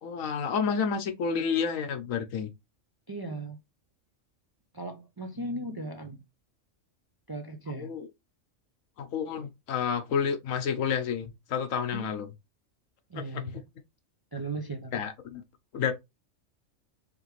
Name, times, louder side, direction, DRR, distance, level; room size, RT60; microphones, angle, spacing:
voice 1, 0.0-2.5 7.7-8.1 9.0-12.3 13.1-13.4 14.9-15.4 15.7-15.9, left 6 dB, 85° left, 1.2 m, -30 dB
voice 2, 3.1-3.6 4.7-6.2 7.3-7.9 11.9-12.3 13.1-13.7 14.3-15.0, right 2 dB, 35° right, 0.4 m, -37 dB
4.9 x 3.4 x 3.1 m
omnidirectional pair, 1.3 m